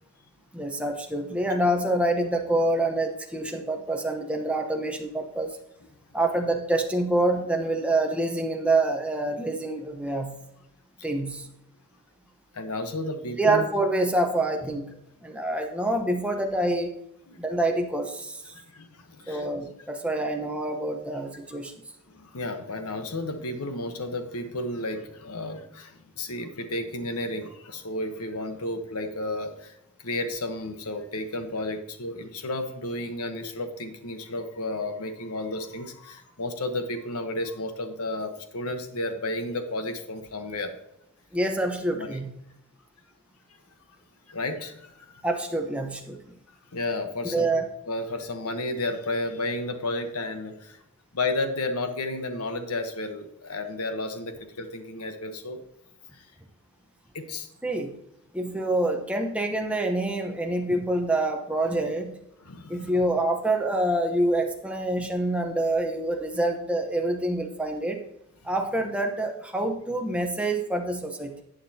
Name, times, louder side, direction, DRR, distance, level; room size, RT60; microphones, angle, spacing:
voice 1, 0.5-5.6 6.1-10.4 11.0-11.5 13.4-16.9 17.4-18.5 19.3-21.7 41.3-42.3 45.2-46.2 47.3-47.7 57.6-57.9 58.3-62.2 62.7-68.0 68.4-71.4, right 1 dB, 5° right, 3 dB, 0.9 m, -26 dB
voice 2, 12.5-13.6 17.3-17.4 18.5-19.5 22.1-40.7 41.9-42.2 44.3-45.2 46.5-47.5 47.9-50.8 51.1-55.6 56.1-56.3 57.1-57.5 62.4-62.9, left 2 dB, 85° left, 7 dB, 1.1 m, -32 dB
11.5 x 8.5 x 2.8 m, 0.84 s
head